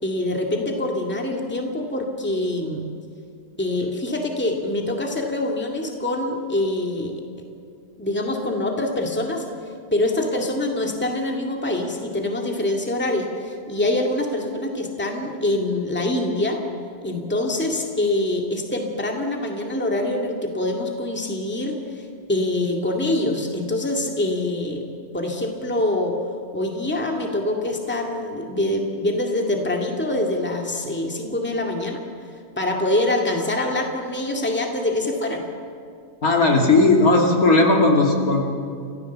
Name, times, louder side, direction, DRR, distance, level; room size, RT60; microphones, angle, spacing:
voice 1, 0.0-2.8 3.6-7.2 8.0-9.4 9.9-16.6 17.0-24.9 25.1-26.2 26.5-32.0 32.6-35.4, left 1 dB, 5° left, 1 dB, 2.1 m, -25 dB
voice 2, 36.2-38.5, left 2 dB, 60° left, 1 dB, 2.7 m, -16 dB
30.0 x 15.5 x 7.3 m, 2.4 s
omnidirectional pair, 1.7 m